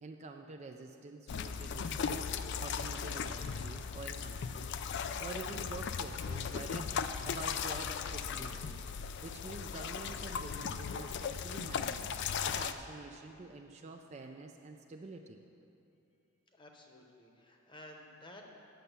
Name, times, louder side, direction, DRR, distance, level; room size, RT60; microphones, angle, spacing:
voice 1, 0.0-2.3 2.6-4.7 5.2-8.8 9.2-15.4, right 3 dB, 30° right, 4 dB, 0.3 m, -47 dB
sound 1, 1.3-12.7, left 6 dB, 50° left, 0.3 m, -37 dB
voice 2, 16.5-18.6, left 1 dB, 20° left, 2 dB, 0.9 m, -53 dB
9.1 x 6.8 x 6.8 m, 2.7 s
head